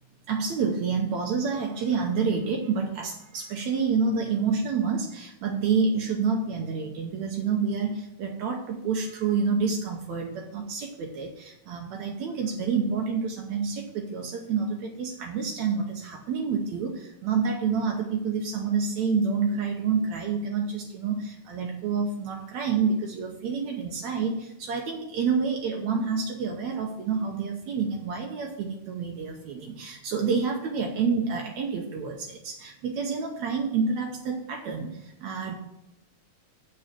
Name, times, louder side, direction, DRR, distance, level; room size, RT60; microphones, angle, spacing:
voice 1, 0.3-35.6, right 5 dB, 75° right, 1 dB, 2.1 m, -28 dB
7.7 x 5.5 x 7.4 m, 0.85 s
omnidirectional pair, 3.4 m